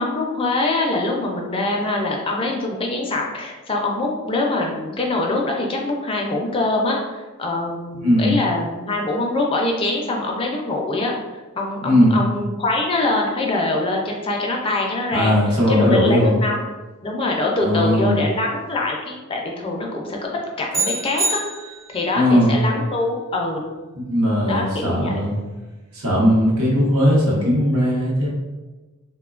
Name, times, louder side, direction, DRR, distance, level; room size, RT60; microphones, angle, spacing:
voice 1, 0.0-11.1 11.6-15.3 15.7-16.6 17.0-20.3 20.6-21.4 21.9-23.6 24.5-25.3, left 2 dB, 25° left, 0 dB, 0.4 m, -23 dB
voice 2, 7.9-8.4 11.8-12.2 15.1-16.4 17.6-18.2 22.1-22.6 23.9-25.4 25.9-28.3, equal, 85° right, -4 dB, 0.8 m, -18 dB
sound 1, 20.7-22.1, right 2 dB, 60° right, 0.8 m, -25 dB
3.0 x 2.1 x 2.3 m, 1.2 s
head